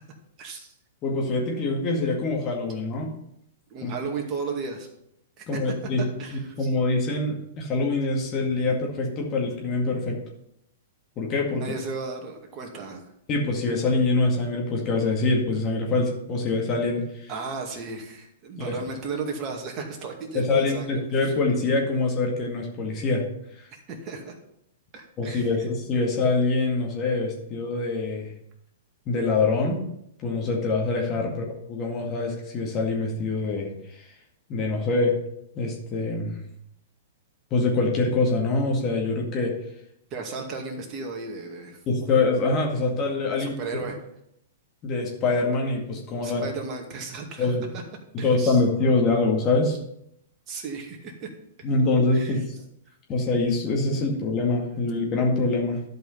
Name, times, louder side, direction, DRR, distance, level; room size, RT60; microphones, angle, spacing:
voice 1, 0.4-0.7 3.7-4.9 5.4-5.7 6.2-6.7 11.5-13.0 17.3-21.3 23.9-24.3 24.9-25.5 40.1-41.8 43.3-44.0 46.2-47.8 48.2-48.6 50.5-51.3 52.1-52.4, right 4 dB, 35° right, 1 dB, 2.3 m, -35 dB
voice 2, 1.0-3.1 3.8-3.9 5.5-6.0 6.3-10.2 11.2-11.7 13.3-17.3 18.6-18.8 20.3-23.3 23.6-23.7 25.2-28.3 29.1-29.9 30.2-34.1 34.5-35.2 35.6-36.4 37.5-39.6 41.9-43.9 44.8-46.5 47.4-47.7 48.1-49.8 51.6-52.5 53.1-55.8, left 3 dB, 30° left, -1 dB, 2.1 m, -25 dB
11.5 x 5.5 x 5.7 m, 0.77 s
figure-of-eight pair, 110°, 0 cm